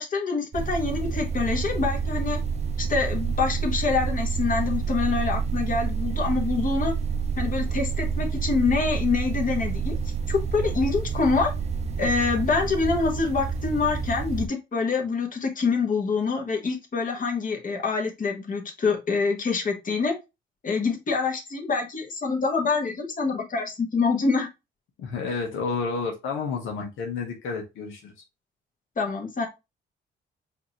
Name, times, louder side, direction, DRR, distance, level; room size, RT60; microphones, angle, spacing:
voice 1, 0.0-2.4 2.8-6.9 7.4-10.0 10.3-11.5 12.0-20.1 20.6-24.5 29.0-29.5, left 4 dB, 45° left, 1.5 m, -26 dB
sound 1, 0.5-14.5, right 5 dB, 35° right, 0.5 m, -28 dB
voice 2, 25.0-28.1, left 4 dB, 80° left, 1.1 m, -30 dB
5.1 x 2.8 x 3.0 m
cardioid pair, 90°, 20 cm